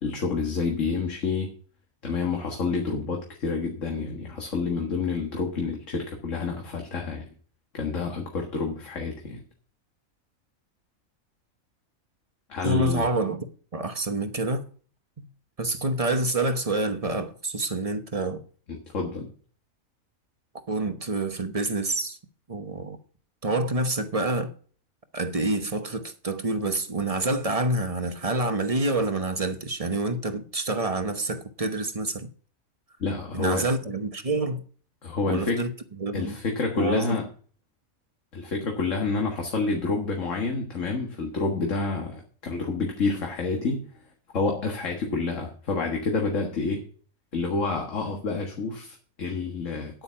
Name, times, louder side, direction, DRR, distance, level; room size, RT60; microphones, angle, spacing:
voice 1, 0.0-1.5 2.0-7.3 7.7-9.4 12.5-13.1 18.7-19.3 33.0-33.7 35.0-35.7 36.1-37.3 38.3-43.9 44.3-46.8 47.3-50.0, left 4 dB, 65° left, 1.9 m, -28 dB
voice 2, 12.6-13.5 13.7-14.7 15.2-15.3 15.6-18.4 20.7-22.2 22.5-23.0 23.4-24.5 25.1-32.3 33.3-34.6 35.3-35.7 36.0-36.4 36.8-37.2, right 2 dB, 30° right, 1.0 m, -27 dB
9.5 x 8.7 x 5.6 m
omnidirectional pair, 1.4 m